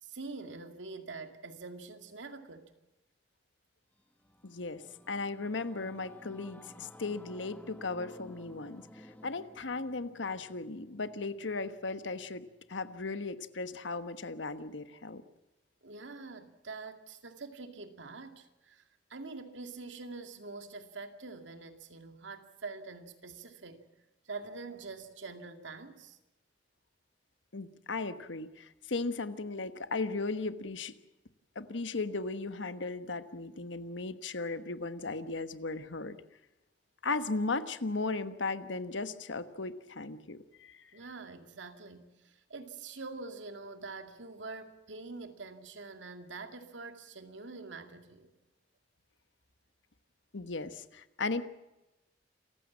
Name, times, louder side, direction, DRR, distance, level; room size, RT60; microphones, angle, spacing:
voice 1, 0.0-2.7 15.8-23.8 24.3-26.2 40.9-48.3, right 3 dB, 85° right, 2.3 m, -45 dB
Singing / Musical instrument, 4.0-13.7, equal, 10° left, 1.5 m, -56 dB
voice 2, 4.4-15.2 27.5-31.0 31.5-36.2 37.0-40.9 50.3-51.4, left 3 dB, 85° left, 1.3 m, -36 dB
27.5 x 15.5 x 7.3 m
head